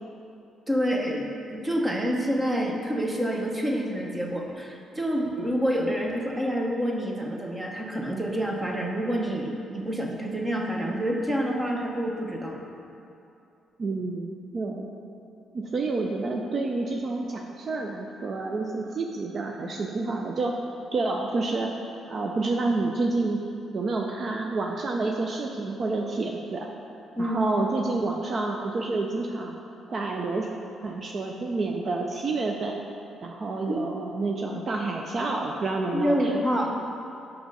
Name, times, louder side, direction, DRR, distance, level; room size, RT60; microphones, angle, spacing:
voice 1, 0.7-12.7 27.1-27.4 33.7-33.8 35.9-36.8, equal, 15° right, 1 dB, 1.0 m, -27 dB
voice 2, 13.8-14.9 15.5-20.5 20.9-21.7 22.1-23.4 23.7-26.7 27.2-29.6 29.9-30.5 30.8-32.8 33.2-36.3, right 3 dB, 45° right, 2 dB, 0.5 m, -29 dB
6.1 x 6.0 x 5.4 m, 2.7 s
cardioid pair, 90°, 0 cm